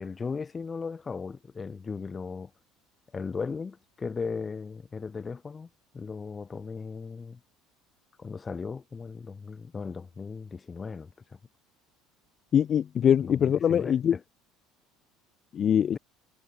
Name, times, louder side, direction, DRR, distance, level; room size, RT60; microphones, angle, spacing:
voice 1, 0.0-2.5 3.1-5.7 5.9-7.4 8.2-11.1 13.2-14.2 15.9-16.0, left 5 dB, 25° left, 3.7 m, -37 dB
voice 2, 12.5-14.2 15.5-16.0, left 9 dB, 40° left, 2.2 m, -23 dB
figure-of-eight pair, 65°, 0 cm